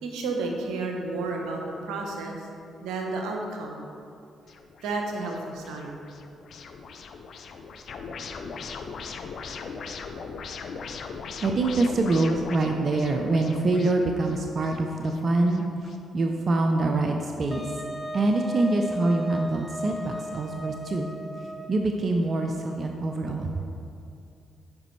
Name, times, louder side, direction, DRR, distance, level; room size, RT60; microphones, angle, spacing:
voice 1, 0.0-2.5 2.8-3.9 4.8-6.0, right 3 dB, 80° right, 1 dB, 0.8 m, -31 dB
sound 1, 4.5-16.0, left 5 dB, 65° left, 0.5 m, -40 dB
voice 2, 11.4-17.7 18.1-21.1 21.7-23.5, right 2 dB, 50° right, 3 dB, 0.6 m, -25 dB
Wind instrument woodwind instrument, 17.5-21.9, equal, 10° left, 0.8 m, -35 dB
9.6 x 5.0 x 3.2 m, 2.5 s
hypercardioid pair, 50°, 0 cm